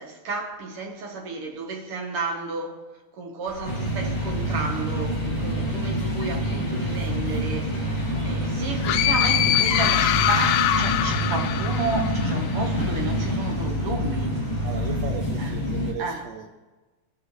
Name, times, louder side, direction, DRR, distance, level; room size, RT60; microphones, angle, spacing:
voice 1, 0.0-2.8 3.1-14.5 15.4-15.5 16.0-16.3, right 3 dB, 55° right, 1.9 m, -32 dB
sound 1, 3.4-15.0, equal, 30° right, 3.8 m, -46 dB
sound 2, 3.6-15.9, equal, 10° left, 1.4 m, -27 dB
sound 3, 8.8-12.5, left 11 dB, 85° left, 2.0 m, -23 dB
voice 2, 14.6-16.5, right 8 dB, 75° right, 1.7 m, -36 dB
17.0 x 6.8 x 3.1 m
omnidirectional pair, 3.5 m